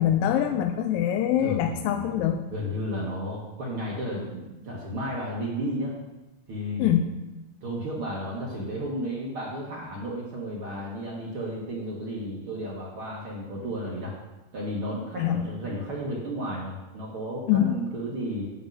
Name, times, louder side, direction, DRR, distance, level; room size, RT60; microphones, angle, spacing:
voice 1, 0.0-2.4 6.8-7.1 15.2-15.5 17.5-17.8, left 10 dB, 80° left, 5 dB, 2.1 m, -24 dB
voice 2, 1.4-2.1 2.5-6.0 6.5-7.0 7.6-14.1 14.5-18.5, equal, 60° right, -4 dB, 1.4 m, -33 dB
11.0 x 3.7 x 7.5 m, 1.0 s
omnidirectional pair, 4.3 m